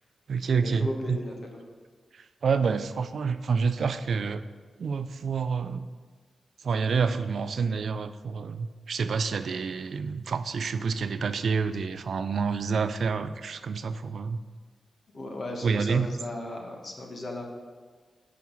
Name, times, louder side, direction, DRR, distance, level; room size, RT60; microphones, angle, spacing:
voice 1, 0.3-1.2 2.1-4.4 4.8-5.9 6.6-14.4 15.6-16.1, right 5 dB, 65° right, 12 dB, 0.3 m, -28 dB
voice 2, 0.8-1.6 15.1-17.5, left 1 dB, 45° left, 1 dB, 1.1 m, -36 dB
9.2 x 6.0 x 3.1 m, 1.5 s
wide cardioid pair, 120°, 0 cm